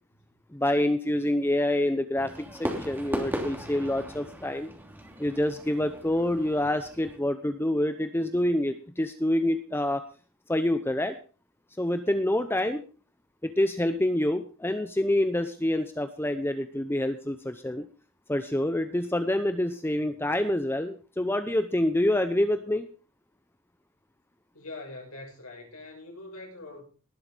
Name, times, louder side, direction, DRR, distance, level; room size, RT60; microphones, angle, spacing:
voice 1, 0.5-2.3 2.6-4.7 5.2-10.0 10.5-11.2 11.8-12.8 13.4-17.9 18.3-22.9, left 1 dB, 10° left, 9 dB, 0.7 m, -27 dB
Fireworks, 2.2-7.2, equal, 10° right, 2.9 m, -37 dB
voice 2, 24.5-26.8, left 2 dB, 90° left, 0 dB, 6.7 m, -43 dB
19.0 x 7.8 x 5.2 m, 0.37 s
head